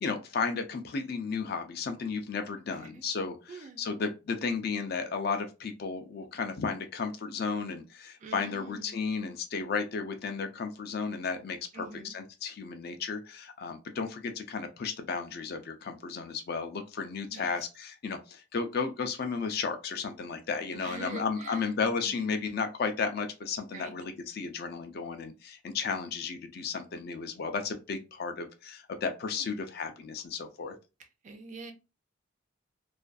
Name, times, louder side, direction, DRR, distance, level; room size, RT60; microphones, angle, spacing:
voice 1, 0.0-3.5 3.8-11.9 12.1-30.8, left 5 dB, 50° left, 6 dB, 0.4 m, -34 dB
voice 2, 2.7-3.0 3.5-3.8 8.2-9.1 11.7-12.1 17.3-17.7 20.7-21.7 22.0-22.3 23.7-23.9 29.3-29.6 31.0-31.7, right 4 dB, 35° right, 5 dB, 0.4 m, -45 dB
2.4 x 2.2 x 2.3 m, 0.29 s
head